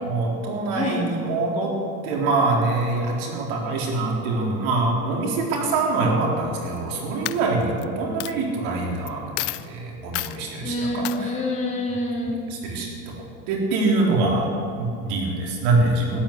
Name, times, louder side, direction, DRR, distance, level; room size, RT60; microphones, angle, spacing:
voice 1, 0.0-1.7 2.0-11.3 12.5-13.1 13.5-14.5 14.8-16.2, right 3 dB, 65° right, -1 dB, 4.0 m, -24 dB
Coin (dropping), 6.6-6.9 7.2-7.8 8.2-8.3 9.1-9.2 9.4-9.7 10.1-10.4 11.0-11.2, left 21 dB, 50° left, 0.6 m, -29 dB
voice 2, 10.6-12.4, left 1 dB, 15° left, -2 dB, 2.7 m, -26 dB
12.5 x 11.0 x 8.4 m, 2.5 s
supercardioid pair, 120°, 45 cm